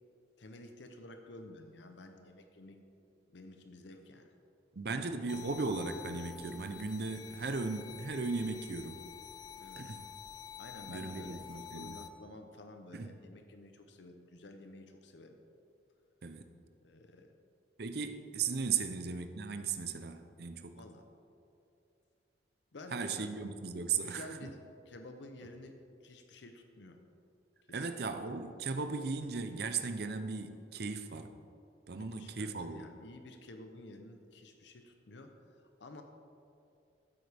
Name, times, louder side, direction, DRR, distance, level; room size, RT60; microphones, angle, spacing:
voice 1, 0.4-2.8 3.3-4.3 7.3-7.4 9.6-9.9 10.6-11.4 11.7-15.4 16.8-17.3 18.7-19.0 20.7-21.1 22.7-23.3 24.0-24.6 24.9-25.8 26.0-27.0 27.7-28.0 31.9-35.4 35.8-36.0, left 2 dB, 75° left, 6 dB, 0.7 m, -51 dB
voice 2, 4.7-9.0 9.8-10.0 10.9-12.0 12.9-13.1 16.2-16.5 17.8-20.8 22.9-24.5 27.7-31.3 31.9-32.9, right 4 dB, 55° right, 8 dB, 0.6 m, -37 dB
sound 1, 5.3-12.1, left 9 dB, 20° left, 0.4 m, -49 dB
13.5 x 8.1 x 3.5 m, 2.6 s
head